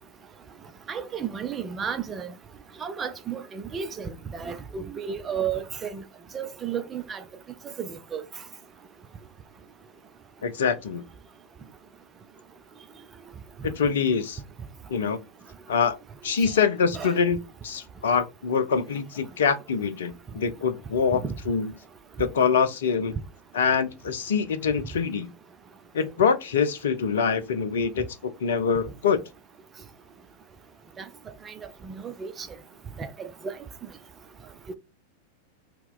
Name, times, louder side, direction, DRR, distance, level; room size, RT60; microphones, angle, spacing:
voice 1, 0.9-2.3 2.8-6.0 6.3-7.2 7.8-8.2 16.9-17.1 21.2-21.3 31.0-31.1 31.5-31.6 31.8-32.5 33.0-33.3, right 7 dB, 20° right, 0.5 m, -33 dB
voice 2, 10.4-11.0 13.6-14.4 14.9-15.2 15.7-16.0 16.2-17.4 17.6-21.7 22.2-23.2 23.5-25.3 25.9-29.2, left 6 dB, 60° left, 0.5 m, -25 dB
3.0 x 2.8 x 3.7 m
figure-of-eight pair, 90°, 0 cm